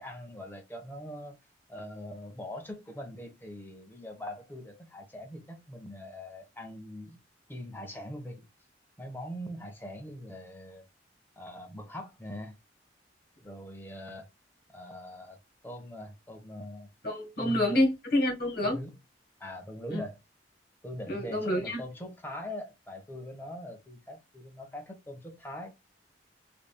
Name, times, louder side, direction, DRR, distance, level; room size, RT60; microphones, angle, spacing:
voice 1, 0.0-1.3 1.7-7.2 7.5-8.5 9.0-10.8 11.4-12.6 13.4-14.3 14.7-16.9 17.4-17.8 18.6-19.0 19.4-20.2 20.8-25.7, left 1 dB, 10° left, 1.1 m, -42 dB
voice 2, 17.0-18.8 19.9-20.0 21.1-21.8, left 1 dB, 55° left, 1.6 m, -28 dB
3.7 x 3.4 x 2.3 m
head